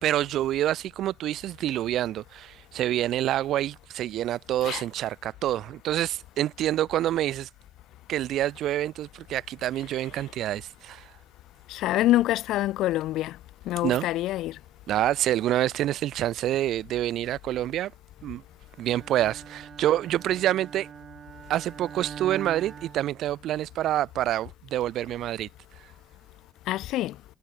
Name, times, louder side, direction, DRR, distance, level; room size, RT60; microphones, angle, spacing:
voice 1, 0.0-7.5 8.1-11.1 13.8-14.1 14.9-17.9 18.2-18.4 18.8-20.9 21.5-25.5, right 13 dB, 80° right, 2.0 m, -27 dB
voice 2, 11.7-13.4 13.7-14.6 26.7-27.2, left 15 dB, 90° left, 4.2 m, -26 dB
Bowed string instrument, 18.8-23.8, right 7 dB, 55° right, 7.0 m, -43 dB
cardioid pair, 90°, 0 cm